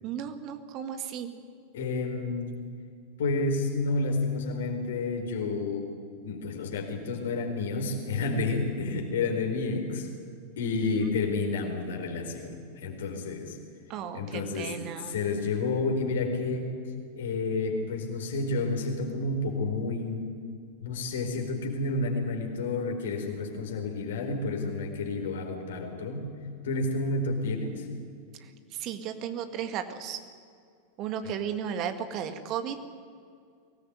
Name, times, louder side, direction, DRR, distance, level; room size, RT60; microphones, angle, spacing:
voice 1, 0.0-1.3 10.8-11.2 13.9-15.2 28.4-30.2 31.0-32.8, right 8 dB, 40° right, 8 dB, 2.1 m, -35 dB
voice 2, 1.7-2.6 3.2-5.9 6.2-10.1 10.6-13.6 14.1-14.7 15.1-16.7 17.1-20.3 20.8-26.3 26.6-27.9, left 3 dB, 60° left, 4 dB, 4.3 m, -30 dB
23.0 x 19.0 x 9.5 m, 2.3 s
figure-of-eight pair, 90°, 0 cm